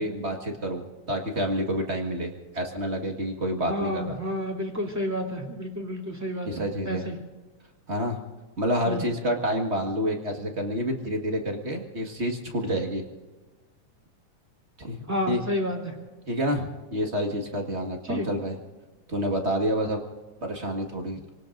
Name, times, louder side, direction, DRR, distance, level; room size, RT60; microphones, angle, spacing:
voice 1, 0.0-4.2 6.4-7.1 7.9-8.2 8.6-13.0 14.8-15.0 15.3-15.4 16.3-18.6 19.1-20.0 20.4-21.2, equal, 35° right, 2 dB, 1.2 m, -28 dB
voice 2, 3.7-6.5 6.8-7.2 8.8-9.0 15.1-15.9 18.1-18.3, equal, 5° right, -1 dB, 2.4 m, -30 dB
28.0 x 19.0 x 2.6 m, 1.3 s
omnidirectional pair, 3.6 m